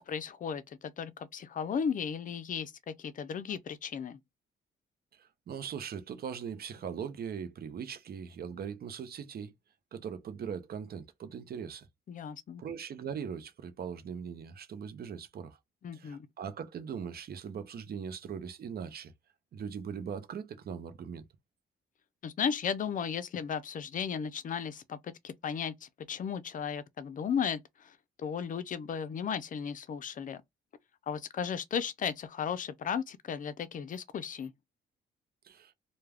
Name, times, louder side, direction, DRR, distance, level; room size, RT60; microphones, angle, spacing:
voice 1, 0.0-4.2 12.1-12.6 15.8-16.3 22.2-30.4 31.1-34.5, left 7 dB, 40° left, 0.5 m, -35 dB
voice 2, 5.2-9.5 9.9-11.9 12.6-15.6 15.9-19.1 19.5-21.2 35.4-35.7, right 7 dB, 50° right, 0.6 m, -40 dB
2.3 x 2.2 x 3.3 m
cardioid pair, 90°, 20 cm